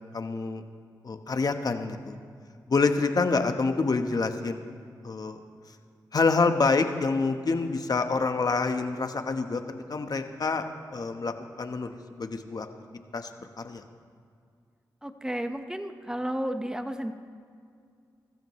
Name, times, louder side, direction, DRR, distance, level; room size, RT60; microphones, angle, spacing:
voice 1, 0.1-0.6 1.0-2.2 2.7-4.6 5.0-5.4 6.1-9.6 9.9-10.6 10.9-12.7 13.1-13.3 13.6-13.8, left 4 dB, 55° left, 7 dB, 1.2 m, -27 dB
voice 2, 15.0-17.1, equal, 10° right, 7 dB, 1.2 m, -32 dB
24.0 x 14.0 x 3.2 m, 2.2 s
cardioid pair, 50°, 8 cm